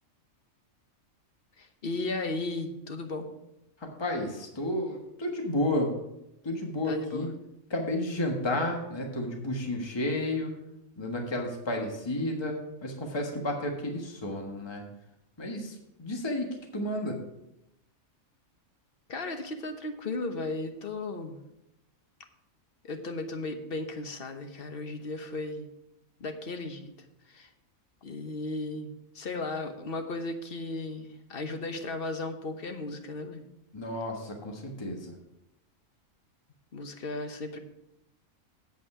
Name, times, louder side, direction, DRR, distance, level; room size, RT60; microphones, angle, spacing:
voice 1, 1.6-3.3 6.8-7.3 19.1-21.4 22.8-25.7 26.2-26.9 27.3-27.5 28.0-28.9 29.1-33.4 36.7-37.6, left 2 dB, 45° left, 6 dB, 1.1 m, -35 dB
voice 2, 3.8-6.0 6.4-7.3 7.7-10.5 11.0-14.8 15.4-17.2 33.7-35.2, left 1 dB, 20° left, 1 dB, 1.4 m, -32 dB
8.3 x 8.3 x 4.9 m, 0.85 s
omnidirectional pair, 1.4 m